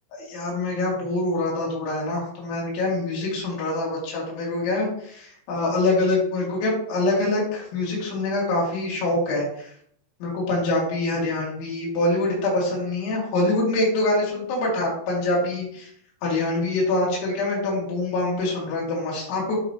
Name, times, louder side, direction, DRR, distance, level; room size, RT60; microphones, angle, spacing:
voice 1, 0.1-9.7 10.2-15.9 16.2-19.6, left 2 dB, 80° left, -5 dB, 4.4 m, -25 dB
11.0 x 4.4 x 2.9 m, 0.66 s
omnidirectional pair, 5.2 m